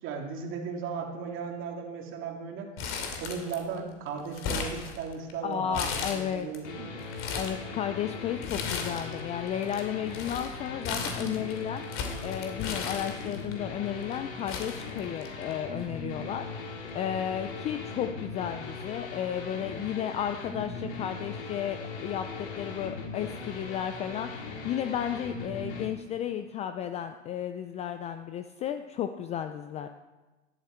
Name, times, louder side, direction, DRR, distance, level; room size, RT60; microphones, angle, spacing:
voice 1, 0.0-2.7 3.2-7.0, right 5 dB, 35° right, 2 dB, 2.6 m, -36 dB
Crumpling crinkling, 2.8-3.8 4.1-5.3 5.7-6.6 7.0-7.6 8.4-9.2 9.5-13.5 14.1-14.2 14.5-15.5 15.8-15.9 16.9-17.1, left 5 dB, 35° left, 2.7 m, -35 dB
voice 2, 5.4-6.5 7.3-29.9, left 9 dB, 20° left, 9 dB, 0.4 m, -33 dB
sound 1, 6.6-25.9, left 4 dB, 70° left, 4.1 m, -39 dB
16.0 x 12.0 x 4.4 m, 1.2 s
hypercardioid pair, 125°, 35 cm